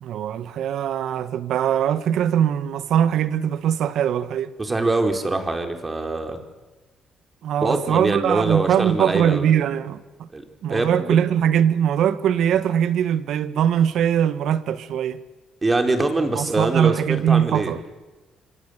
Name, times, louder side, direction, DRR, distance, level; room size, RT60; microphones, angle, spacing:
voice 1, 0.0-4.5 7.4-10.3 10.6-15.2 16.3-17.8, right 9 dB, 80° right, 1.6 m, -21 dB
voice 2, 4.6-6.4 7.6-9.5 10.3-10.4 10.7-11.2 15.6-17.7, right 2 dB, 25° right, 4.7 m, -23 dB
26.5 x 26.0 x 8.3 m
cardioid pair, 90°, 0 cm